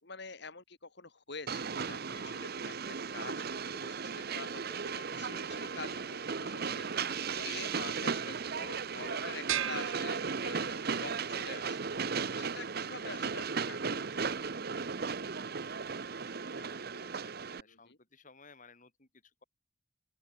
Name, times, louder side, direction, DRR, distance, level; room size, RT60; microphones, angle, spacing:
voice 1, 0.0-2.8 3.1-14.5 17.7-18.0, left 4 dB, 60° left, 3.0 m, -47 dB
Train, 1.5-17.6, right 5 dB, 50° right, 0.8 m, -36 dB
sound 1, 9.5-11.0, right 10 dB, 85° right, 1.2 m, -37 dB
voice 2, 16.6-19.4, left 4 dB, 40° left, 4.0 m, -59 dB
open air
head